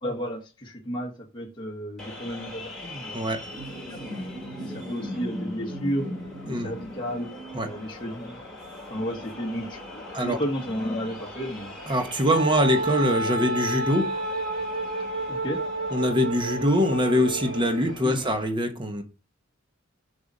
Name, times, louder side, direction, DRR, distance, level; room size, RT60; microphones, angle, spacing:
voice 1, 0.0-4.1 4.6-6.1 6.4-8.4 8.9-11.8 15.3-15.6 18.0-18.2, equal, 25° left, 1.2 m, -33 dB
sound 1, 2.0-18.5, left 1 dB, ahead, 3.4 m, -40 dB
voice 2, 11.9-14.1 15.9-19.0, equal, 25° right, 1.0 m, -23 dB
Wind instrument woodwind instrument, 12.3-17.9, right 1 dB, 50° right, 2.9 m, -30 dB
6.8 x 5.4 x 5.4 m
head